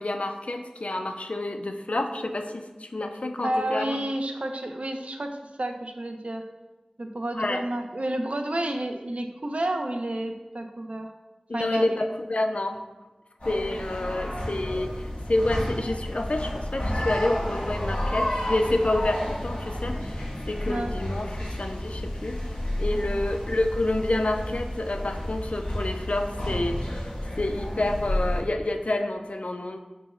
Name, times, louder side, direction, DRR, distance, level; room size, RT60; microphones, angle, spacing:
voice 1, 0.0-4.0 7.3-7.6 11.5-12.8 13.5-22.4 22.8-27.0 27.4-29.8, left 2 dB, 65° left, 6 dB, 0.3 m, -28 dB
voice 2, 3.4-5.3 5.6-6.4 7.0-11.1 11.5-11.9 14.0-14.1 20.7-20.9 22.9-23.2, right 1 dB, 65° right, 4 dB, 0.4 m, -30 dB
sound 1, 13.4-28.4, left 1 dB, 85° left, 1.3 m, -31 dB
4.3 x 2.0 x 4.2 m, 1.1 s
wide cardioid pair, 45°, 2 cm